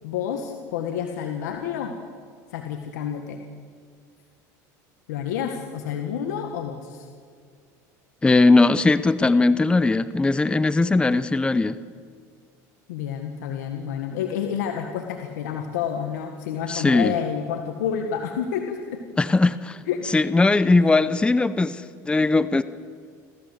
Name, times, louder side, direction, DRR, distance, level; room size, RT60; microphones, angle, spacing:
voice 1, 0.0-2.0 2.5-3.4 5.1-7.1 12.9-19.0 19.9-20.1 20.8-20.9, left 8 dB, 85° left, 4 dB, 1.7 m, -29 dB
voice 2, 8.2-11.8 16.7-17.2 19.2-19.8 20.1-22.6, left 3 dB, 10° left, 15 dB, 0.8 m, -19 dB
28.0 x 14.5 x 8.0 m, 2.1 s
supercardioid pair, 105°, 9 cm